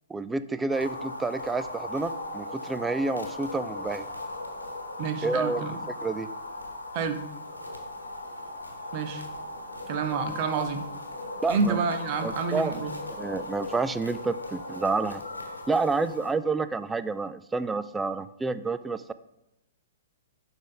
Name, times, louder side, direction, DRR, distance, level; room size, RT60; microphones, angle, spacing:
voice 1, 0.1-4.1 5.2-5.6 6.0-6.3 11.4-11.8 12.2-12.7 13.2-15.2 15.7-19.1, right 3 dB, 10° right, 14 dB, 0.3 m, -29 dB
sound 1, 0.7-16.3, left 2 dB, 85° left, 1.2 m, -38 dB
voice 2, 5.0-5.7 6.9-7.3 8.9-9.2 9.9-10.8 11.5-12.9, right 5 dB, 40° right, 9 dB, 0.7 m, -28 dB
11.0 x 3.9 x 3.8 m, 0.88 s
figure-of-eight pair, 110°, 0 cm